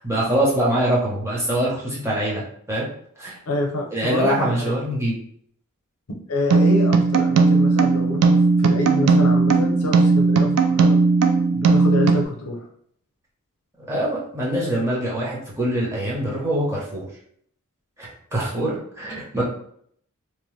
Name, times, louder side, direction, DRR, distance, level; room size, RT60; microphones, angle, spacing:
voice 1, 0.0-2.9 3.2-3.3 3.9-5.2 13.8-17.1 18.0-19.4, right 1 dB, 10° right, -5 dB, 0.8 m, -24 dB
voice 2, 3.5-4.8 6.3-11.0 11.5-12.6, left 2 dB, 75° left, 2 dB, 0.6 m, -27 dB
sound 1, 6.5-12.2, right 4 dB, 85° right, 0.4 m, -17 dB
2.8 x 2.1 x 3.1 m, 0.66 s
head